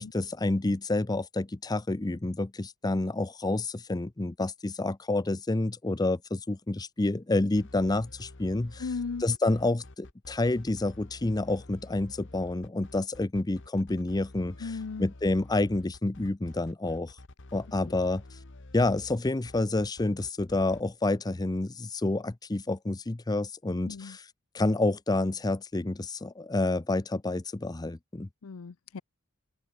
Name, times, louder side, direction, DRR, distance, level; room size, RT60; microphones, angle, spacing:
voice 1, 0.0-8.8 9.2-14.7 15.0-17.1 17.5-18.2 18.7-24.3 24.5-28.3, left 2 dB, 20° left, 0.6 m, -29 dB
sound 1, 7.6-20.8, left 2 dB, 60° left, 1.4 m, -49 dB
voice 2, 8.8-9.2 14.6-15.1 17.8-17.9 23.9-24.2 28.4-29.0, left 4 dB, 75° left, 0.6 m, -36 dB
open air
head